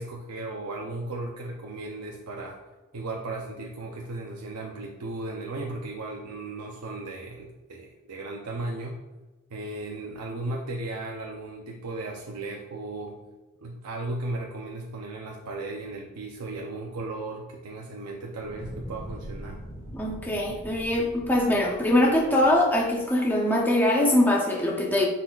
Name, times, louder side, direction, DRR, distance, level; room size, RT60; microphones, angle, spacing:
voice 1, 0.0-2.6 2.9-9.0 9.5-13.2 13.6-19.6, right 2 dB, 90° right, 0 dB, 0.7 m, -36 dB
Fire, 18.3-23.5, equal, 25° left, 2.1 m, -43 dB
voice 2, 19.9-25.1, left 1 dB, 10° left, -2 dB, 0.8 m, -22 dB
9.9 x 4.1 x 2.5 m, 1.2 s
head